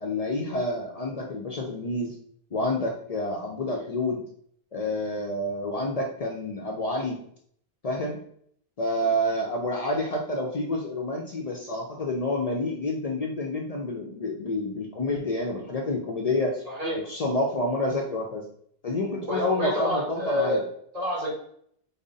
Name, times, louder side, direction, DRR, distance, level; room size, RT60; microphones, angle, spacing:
voice 1, 0.0-2.1 2.5-4.2 4.7-7.2 7.8-8.2 8.8-16.5 17.0-18.4 18.8-20.6, left 1 dB, 50° left, 0 dB, 0.4 m, -28 dB
voice 2, 16.7-17.0 19.3-20.6 20.9-21.3, left 1 dB, 40° right, -4 dB, 1.1 m, -28 dB
3.8 x 2.0 x 3.8 m, 0.65 s
omnidirectional pair, 1.1 m